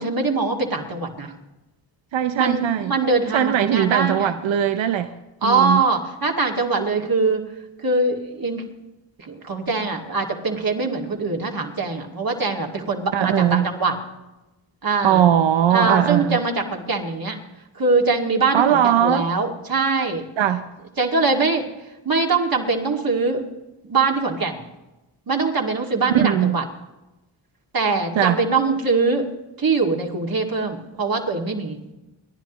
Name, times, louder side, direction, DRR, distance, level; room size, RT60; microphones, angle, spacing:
voice 1, 0.0-1.3 2.4-4.3 5.4-7.4 7.8-8.6 9.2-13.9 14.8-15.2 15.7-17.4 17.8-20.2 21.0-21.7 22.0-23.4 23.8-24.6 25.3-26.6 27.7-29.3 29.6-31.8, right 3 dB, 50° right, 1 dB, 2.3 m, -22 dB
voice 2, 2.1-2.9 3.3-5.1 5.4-5.8 13.1-13.7 15.0-16.4 18.5-19.2 20.4-20.6 26.2-26.6 28.1-28.4, right 10 dB, 75° right, 10 dB, 0.7 m, -19 dB
29.5 x 10.5 x 3.1 m, 1.0 s
cardioid pair, 55°, 46 cm